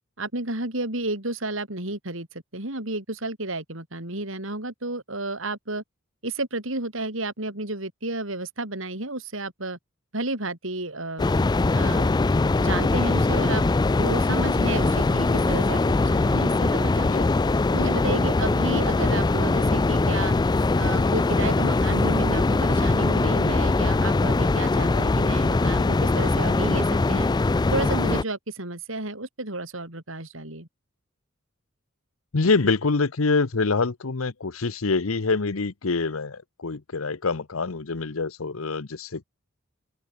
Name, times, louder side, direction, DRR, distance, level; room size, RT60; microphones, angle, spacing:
voice 1, 0.2-5.8 6.2-9.8 10.1-11.3 11.7-12.1 12.6-13.6 14.0-17.3 17.7-20.3 20.8-27.3 27.7-30.7, right 2 dB, 70° right, 5.0 m, -31 dB
sound 1, 11.2-28.2, left 3 dB, 20° left, 0.3 m, -22 dB
voice 2, 32.3-39.2, left 4 dB, 90° left, 0.9 m, -25 dB
open air
head